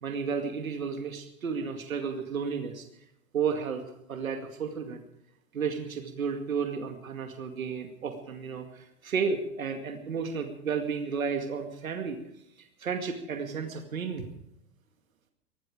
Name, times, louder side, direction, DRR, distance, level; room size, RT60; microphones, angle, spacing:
voice 1, 0.0-2.8 3.3-3.8 4.1-5.0 5.5-12.2 12.8-14.3, right 6 dB, 90° right, 5 dB, 2.3 m, -32 dB
18.5 x 15.5 x 4.9 m, 0.80 s
hypercardioid pair, 105°, 40 cm